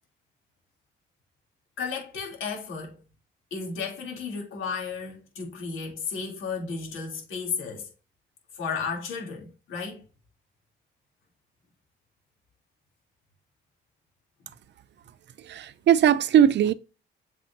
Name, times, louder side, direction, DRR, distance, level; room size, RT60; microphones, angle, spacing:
voice 1, 1.8-3.0 3.5-7.9 8.5-10.0, left 5 dB, 85° left, 3.3 m, -33 dB
voice 2, 15.5-16.7, right 10 dB, 60° right, 0.7 m, -19 dB
7.8 x 5.0 x 2.8 m
cardioid pair, 90°, 20 cm